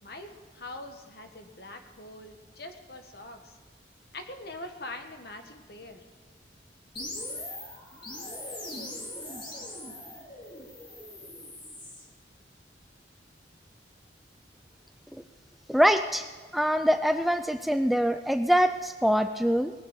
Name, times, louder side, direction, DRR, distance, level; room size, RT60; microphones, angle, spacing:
voice 1, 0.0-3.6 4.1-6.0, left 2 dB, 60° left, 6 dB, 1.5 m, -43 dB
sound 1, 7.0-12.0, left 1 dB, 25° left, 2.3 m, -40 dB
voice 2, 15.7-16.3 16.5-19.7, equal, ahead, 8 dB, 0.3 m, -24 dB
19.5 x 6.9 x 8.3 m, 1.5 s
head